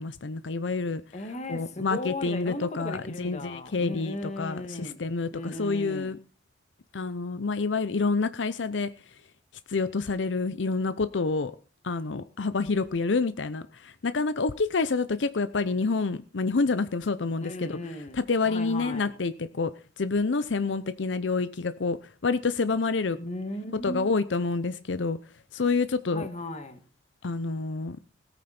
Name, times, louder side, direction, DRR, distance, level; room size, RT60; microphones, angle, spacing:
voice 1, 0.0-1.0 1.5-6.2 6.9-8.9 9.7-11.5 11.8-17.8 18.1-19.7 20.0-22.0 22.2-23.2 23.8-25.2 25.5-26.3 27.2-28.0, left 4 dB, 90° left, 0.7 m, -28 dB
voice 2, 1.1-5.0 5.3-6.1 17.4-19.1 23.2-24.1 26.1-26.8, left 1 dB, 40° left, 1.9 m, -36 dB
17.5 x 9.2 x 4.3 m
head